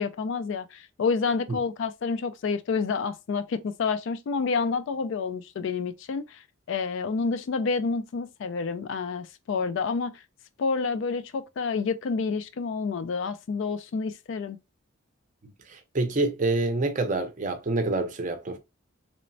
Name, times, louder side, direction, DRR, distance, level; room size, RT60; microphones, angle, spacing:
voice 1, 0.0-6.4 6.7-10.2 10.6-14.6, left 5 dB, 60° left, 0.3 m, -29 dB
voice 2, 15.7-18.6, right 2 dB, 35° right, 0.5 m, -27 dB
3.1 x 2.0 x 2.5 m
head